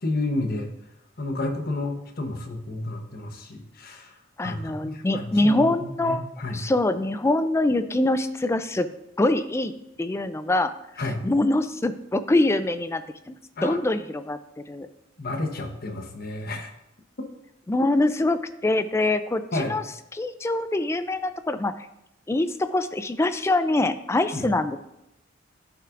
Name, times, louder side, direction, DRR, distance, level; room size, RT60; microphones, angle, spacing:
voice 1, 0.0-0.7 1.2-4.1 4.4-6.6 11.0-11.2 13.6-13.8 15.2-16.7 19.5-19.8 24.3-24.4, left 2 dB, 50° left, 4 dB, 1.0 m, -31 dB
voice 2, 4.4-6.2 6.5-8.9 9.2-9.7 10.0-10.7 11.2-13.0 13.3-13.4 13.6-14.4 14.7-14.9 17.7-19.8 20.1-21.7 22.3-24.8, left 2 dB, 15° left, 11 dB, 0.3 m, -24 dB
12.5 x 5.7 x 2.5 m, 0.85 s
head